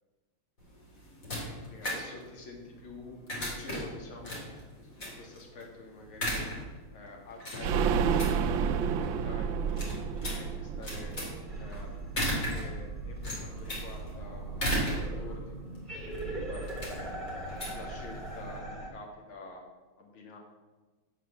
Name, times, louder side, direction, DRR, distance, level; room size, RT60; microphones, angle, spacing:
sound 1, 0.6-18.6, equal, 40° left, 3.0 m, -38 dB
voice 1, 1.7-4.5 5.0-6.4 6.9-11.1 11.6-14.4 14.7-17.3 17.7-19.6 20.0-20.4, left 3 dB, 75° left, 0 dB, 2.6 m, -48 dB
sound 2, 7.6-13.2 13.5-13.6 13.9-14.0, right 6 dB, 75° right, 1.3 m, -31 dB
sound 3, 11.5-18.9, right 2 dB, ahead, 2.6 m, -39 dB
8.3 x 7.8 x 7.1 m, 1.3 s
omnidirectional pair, 2.3 m